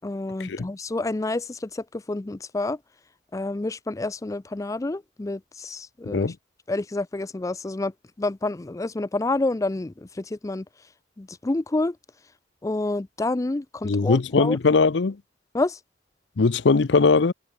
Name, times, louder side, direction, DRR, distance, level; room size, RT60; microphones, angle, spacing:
voice 1, 0.0-2.8 3.3-6.3 6.7-7.9 8.2-10.6 11.2-12.0 12.6-14.6 15.5-15.8, left 2 dB, 20° left, 0.4 m, -28 dB
voice 2, 13.8-15.2 16.4-17.3, left 4 dB, 75° left, 0.6 m, -20 dB
head